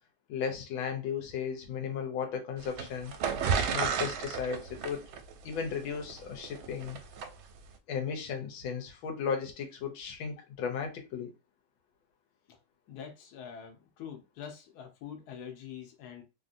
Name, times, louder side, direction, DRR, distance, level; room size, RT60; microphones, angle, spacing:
voice 1, 0.3-3.1 3.7-5.0 5.4-7.0 7.9-11.3, left 6 dB, 85° left, 1.4 m, -35 dB
sound 1, 2.6-7.3, right 6 dB, 85° right, 1.4 m, -32 dB
voice 2, 12.9-16.2, left 8 dB, 65° left, 1.1 m, -45 dB
3.2 x 2.6 x 2.5 m
omnidirectional pair, 2.1 m